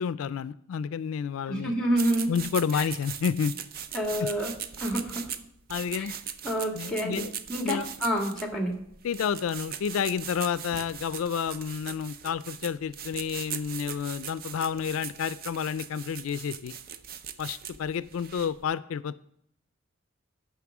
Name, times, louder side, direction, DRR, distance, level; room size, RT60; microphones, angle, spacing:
voice 1, 0.0-1.7 2.3-3.5 4.2-4.3 5.7-6.1 6.7-7.3 7.6-7.9 9.0-16.7 17.4-19.2, left 7 dB, 80° left, 0.3 m, -30 dB
voice 2, 1.5-2.3 3.9-4.5 4.8-5.2 5.9-6.1 6.4-7.2 7.5-8.7, right 1 dB, 5° left, 1.7 m, -28 dB
sound 1, 1.9-18.6, right 8 dB, 45° right, 0.5 m, -40 dB
9.5 x 6.0 x 6.0 m
head